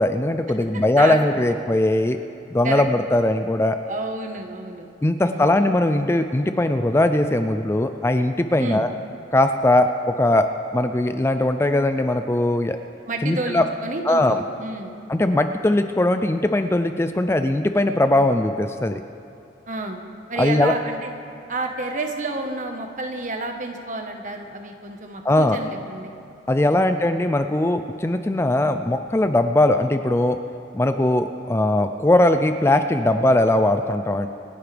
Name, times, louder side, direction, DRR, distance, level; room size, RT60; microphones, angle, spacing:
voice 1, 0.0-2.2 2.5-3.8 5.0-8.9 9.3-10.5 10.7-12.8 13.2-13.6 14.1-14.3 15.1-19.0 20.4-20.7 25.2-25.6 26.5-30.4 30.7-34.3, left 1 dB, 15° left, 8 dB, 0.4 m, -20 dB
voice 2, 3.9-4.9 5.2-5.7 8.6-8.9 13.1-14.9 19.7-20.0 20.3-21.1 21.5-26.1 26.6-26.9, right 2 dB, 45° right, 4 dB, 1.2 m, -30 dB
26.5 x 11.0 x 3.4 m, 2.6 s
head